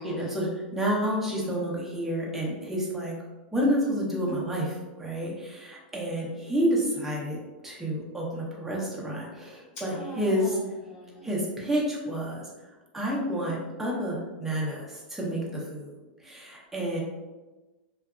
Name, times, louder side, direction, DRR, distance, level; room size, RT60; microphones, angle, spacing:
voice 1, 0.0-3.1 3.5-7.4 7.6-10.6 11.2-12.5 12.9-15.9 16.2-17.0, equal, 5° right, -4 dB, 0.7 m, -29 dB
voice 2, 9.9-10.6 10.9-11.3, left 1 dB, 45° left, -6 dB, 1.4 m, -40 dB
2.6 x 2.3 x 2.3 m, 1.2 s
hypercardioid pair, 125°, 6 cm